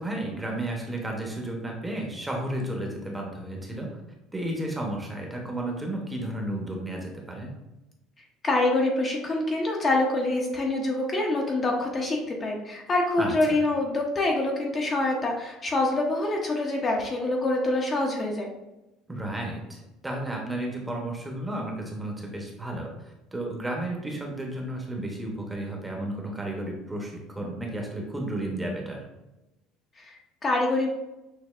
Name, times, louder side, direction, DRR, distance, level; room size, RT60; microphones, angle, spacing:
voice 1, 0.0-4.0 4.3-7.5 13.2-13.7 19.1-29.0, right 1 dB, 10° right, 0 dB, 0.7 m, -33 dB
voice 2, 8.4-18.5 30.0-30.9, left 2 dB, 25° left, 0 dB, 0.6 m, -26 dB
6.3 x 2.5 x 2.4 m, 0.97 s
cardioid pair, 145°, 0 cm